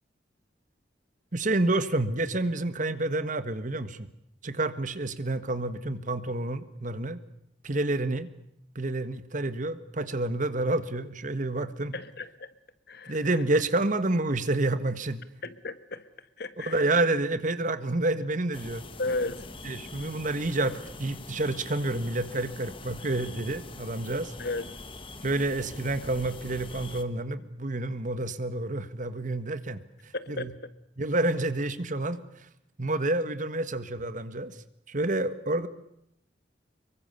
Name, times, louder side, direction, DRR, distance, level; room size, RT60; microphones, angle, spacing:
voice 1, 1.3-4.1 4.4-7.2 7.6-8.3 8.7-11.9 13.1-15.2 16.6-18.9 19.6-24.3 25.2-30.5 31.0-32.2 32.8-34.6 34.9-35.7, right 2 dB, 45° right, 12 dB, 1.6 m, -29 dB
voice 2, 11.9-12.5 12.9-13.3 15.4-17.2 19.0-19.5 24.4-24.7 30.1-30.7, left 2 dB, 60° left, 12 dB, 1.7 m, -35 dB
sound 1, 18.5-27.0, left 2 dB, 30° left, 1.8 m, -43 dB
25.5 x 23.0 x 6.9 m, 0.75 s
head